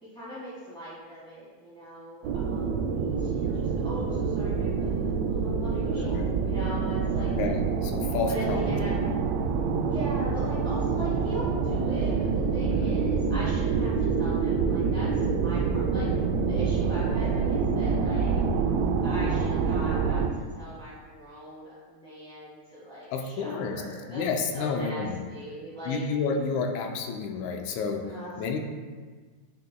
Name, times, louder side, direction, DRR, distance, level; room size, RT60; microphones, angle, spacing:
voice 1, 0.0-7.3 8.2-8.9 9.9-18.5 19.0-24.2 24.5-26.1 28.0-28.3, equal, ahead, -12 dB, 1.4 m, -40 dB
sound 1, 2.2-20.3, right 5 dB, 90° right, 1.4 m, -26 dB
voice 2, 5.9-6.3 7.2-9.0 12.6-12.9 18.2-18.6 23.1-23.8 24.1-25.2 25.9-28.6, left 5 dB, 80° left, 3 dB, 1.9 m, -31 dB
9.5 x 6.6 x 2.3 m, 1.5 s
omnidirectional pair, 3.5 m